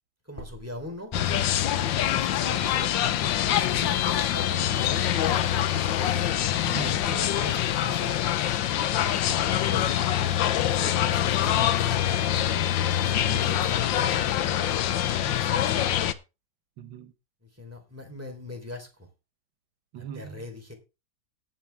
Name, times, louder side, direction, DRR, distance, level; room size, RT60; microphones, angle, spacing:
voice 1, 0.3-1.4 2.0-6.0 6.8-8.5 10.6-12.3 13.2-14.3 15.2-16.0 17.4-19.1 19.9-20.7, left 1 dB, 5° right, 3.4 m, -41 dB
sound 1, 1.1-16.1, left 11 dB, 75° left, 1.5 m, -25 dB
voice 2, 6.7-7.0 9.3-10.1 13.2-13.5 16.8-17.1 19.9-20.4, right 7 dB, 80° right, 1.7 m, -40 dB
17.5 x 7.4 x 3.4 m
omnidirectional pair, 2.2 m